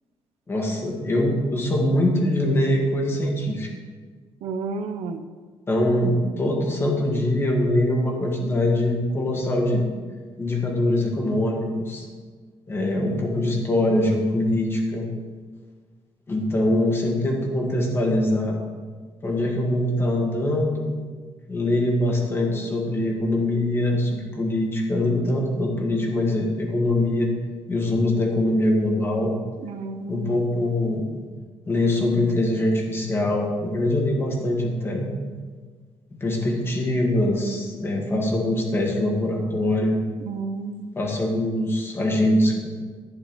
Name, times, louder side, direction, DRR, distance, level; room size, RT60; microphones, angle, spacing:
voice 1, 0.5-3.7 5.7-9.8 10.4-12.0 12.7-15.1 16.3-18.6 19.2-20.9 21.5-27.3 27.7-29.3 30.1-31.0 31.7-35.1 36.2-40.0 40.9-42.7, left 1 dB, 25° left, 0 dB, 1.6 m, -23 dB
voice 2, 4.4-5.2 29.6-30.3 40.3-40.9, right 4 dB, 85° right, 7 dB, 0.7 m, -31 dB
11.5 x 9.6 x 3.1 m, 1.5 s
cardioid pair, 155°, 10 cm